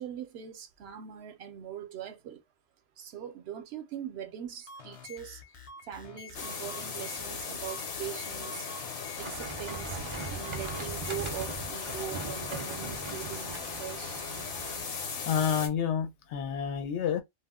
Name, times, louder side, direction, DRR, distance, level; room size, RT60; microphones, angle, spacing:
voice 1, 0.0-2.4 3.0-5.4 5.8-8.7 9.2-14.3, right 9 dB, 70° right, 0.8 m, -41 dB
sound 1, 4.6-12.0, left 3 dB, 45° left, 0.4 m, -48 dB
sound 2, 6.3-15.7, left 5 dB, 65° left, 0.9 m, -38 dB
sound 3, 9.2-14.8, right 4 dB, 45° right, 0.4 m, -40 dB
voice 2, 15.3-17.2, left 8 dB, 90° left, 0.9 m, -29 dB
2.3 x 2.1 x 3.5 m
omnidirectional pair, 1.1 m